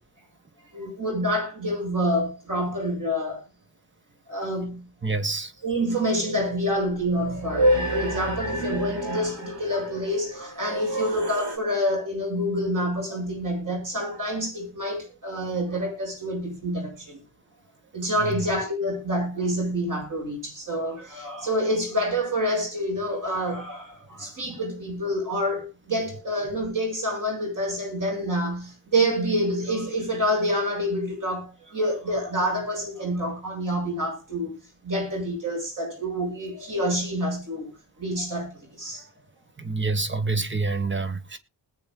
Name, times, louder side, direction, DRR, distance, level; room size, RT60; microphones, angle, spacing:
voice 1, 0.7-3.4 4.3-4.9 5.6-17.2 17.9-34.5 34.8-37.7 38.0-39.0, equal, 45° right, 7.9 m, -27 dB
voice 2, 5.0-5.5 18.2-18.5 39.6-41.4, right 3 dB, 25° right, 1.5 m, -27 dB
sound 1, 6.1-11.6, equal, 75° right, 4.4 m, -29 dB
20.0 x 9.2 x 2.4 m
wide cardioid pair, 175°, 44 cm